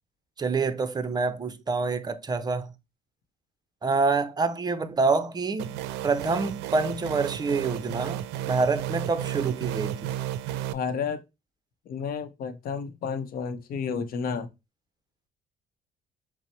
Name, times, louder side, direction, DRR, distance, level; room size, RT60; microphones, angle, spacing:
voice 1, 0.4-2.7 3.8-5.8 6.0-10.1, right 4 dB, 25° right, 0.6 m, -27 dB
sound 1, 5.6-10.7, right 12 dB, 90° right, 0.4 m, -33 dB
voice 2, 10.7-11.2 11.9-14.5, left 6 dB, 60° left, 0.7 m, -31 dB
5.7 x 2.1 x 4.3 m
cardioid pair, 110°, 17 cm